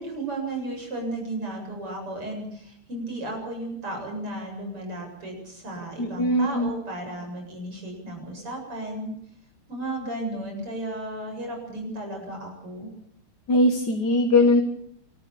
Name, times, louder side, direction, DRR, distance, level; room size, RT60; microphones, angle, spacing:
voice 1, 0.0-9.1 9.7-12.9, right 1 dB, 85° right, 2 dB, 8.9 m, -34 dB
voice 2, 6.0-6.7 13.5-14.6, left 1 dB, 50° left, 5 dB, 2.1 m, -20 dB
27.5 x 14.5 x 8.7 m, 0.71 s
omnidirectional pair, 2.4 m